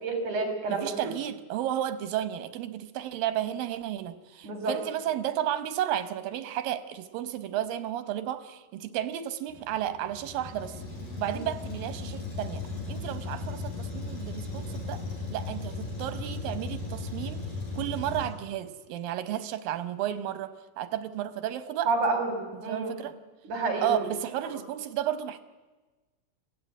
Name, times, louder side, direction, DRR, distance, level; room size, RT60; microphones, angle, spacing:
voice 1, 0.0-1.1 4.4-4.8 21.9-22.9 23.4-24.1 24.5-24.6, right 3 dB, 60° right, 5 dB, 5.5 m, -29 dB
voice 2, 0.7-10.8 11.2-12.6 12.9-15.0 15.3-17.4 17.8-21.9 22.5-23.1 23.8-25.4, right 11 dB, 85° right, 12 dB, 2.7 m, -33 dB
Truck, 9.5-18.3, left 3 dB, 55° left, 8.5 m, -36 dB
23.5 x 16.0 x 9.1 m, 1.2 s
omnidirectional pair, 4.0 m